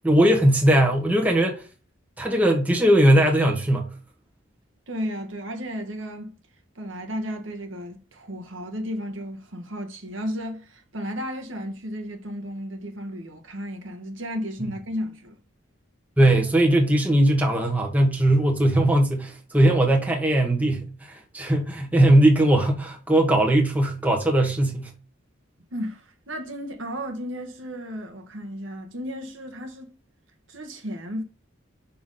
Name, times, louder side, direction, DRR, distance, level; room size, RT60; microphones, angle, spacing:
voice 1, 0.0-1.6 2.2-3.9 16.2-24.9, right 1 dB, 10° right, 1.3 m, -19 dB
voice 2, 4.9-6.3 6.7-15.4 25.7-29.9 30.5-31.2, equal, 75° right, 1.5 m, -34 dB
6.1 x 5.8 x 3.9 m
head